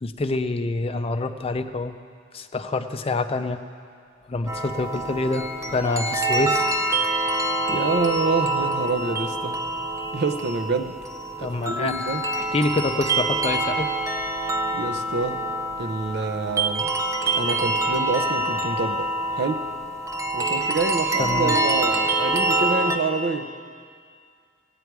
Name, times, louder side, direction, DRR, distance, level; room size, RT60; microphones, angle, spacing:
voice 1, 0.0-2.0 2.3-3.6 4.3-6.7 11.4-12.0 12.4-13.9 21.2-21.6, left 3 dB, 30° left, 9 dB, 0.4 m, -26 dB
sound 1, 4.5-23.0, right 2 dB, 15° right, 0.6 m, -26 dB
voice 2, 7.7-9.7 10.1-11.0 11.4-12.3 14.7-15.4 15.8-16.9 17.2-19.1 19.3-19.6 20.3-23.5, right 3 dB, 60° right, 8 dB, 0.7 m, -27 dB
17.0 x 9.2 x 4.7 m, 2.2 s
head